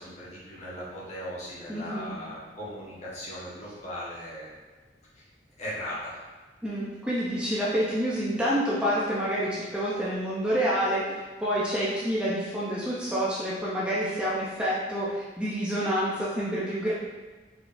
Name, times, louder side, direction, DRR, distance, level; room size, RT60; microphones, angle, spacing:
voice 1, 0.0-4.5 5.2-5.3 5.6-6.2, equal, 40° left, -8 dB, 1.4 m, -38 dB
voice 2, 1.7-2.2 6.6-11.0 11.4-16.9, equal, 5° right, -8 dB, 0.7 m, -28 dB
4.8 x 3.6 x 2.6 m, 1.3 s
head